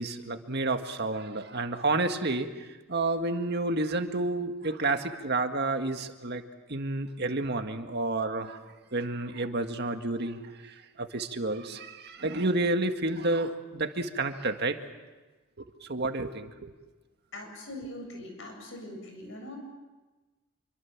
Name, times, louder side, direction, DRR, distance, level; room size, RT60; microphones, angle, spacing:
voice 1, 0.0-6.4 6.7-8.6 8.9-14.8 15.6-16.7, right 2 dB, 55° right, 6 dB, 1.8 m, -30 dB
voice 2, 17.3-19.6, left 1 dB, 70° left, 3 dB, 7.7 m, -42 dB
27.0 x 24.0 x 7.3 m, 1.2 s
head